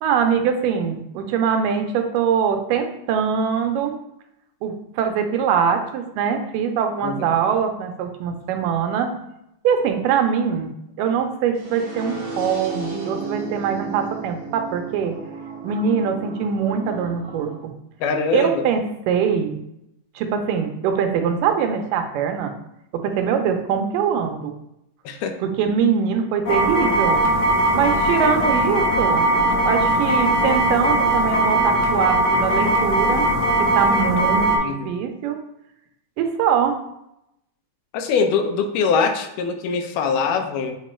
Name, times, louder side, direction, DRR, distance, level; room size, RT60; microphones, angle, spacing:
voice 1, 0.0-3.9 4.6-9.1 9.6-10.7 11.0-15.2 15.6-17.7 18.3-19.6 20.2-22.5 22.9-24.5 25.4-27.2 27.7-29.3 29.7-33.3 33.6-35.4 36.2-36.8, right 7 dB, 90° right, 6 dB, 2.3 m, -22 dB
sound 1, 11.5-17.5, right 3 dB, 30° right, 1.6 m, -34 dB
voice 2, 18.0-18.7 25.1-25.3 34.6-34.9 37.9-40.8, left 5 dB, 80° left, 6 dB, 2.1 m, -22 dB
sound 2, 26.4-34.6, right 1 dB, 65° left, 1.2 m, -19 dB
8.0 x 3.0 x 4.3 m, 0.81 s
omnidirectional pair, 3.8 m